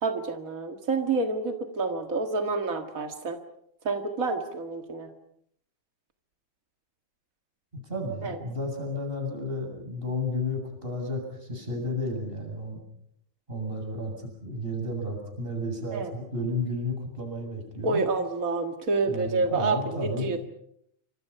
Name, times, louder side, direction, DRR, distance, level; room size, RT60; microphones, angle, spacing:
voice 1, 0.0-3.4 3.8-5.1 8.2-8.4 15.9-16.1 17.8-20.4, right 3 dB, 55° right, 5 dB, 0.9 m, -28 dB
voice 2, 7.9-12.8 13.5-18.0 19.0-20.4, left 1 dB, 15° right, 3 dB, 7.8 m, -32 dB
28.5 x 26.0 x 5.7 m, 0.71 s
omnidirectional pair, 4.4 m